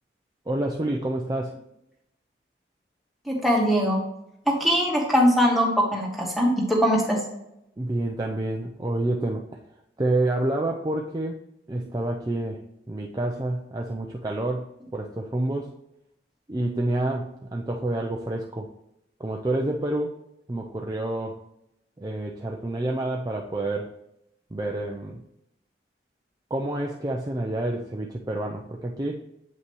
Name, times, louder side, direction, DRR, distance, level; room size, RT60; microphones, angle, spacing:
voice 1, 0.5-1.6 7.8-9.6 10.0-11.4 11.7-15.7 16.5-18.7 19.2-20.2 20.5-21.4 22.0-23.9 24.5-25.2 26.5-29.2, right 1 dB, 20° right, 0 dB, 0.5 m, -28 dB
voice 2, 3.3-4.0 4.5-7.2, equal, ahead, -3 dB, 1.6 m, -21 dB
8.2 x 5.6 x 3.1 m, 0.82 s
head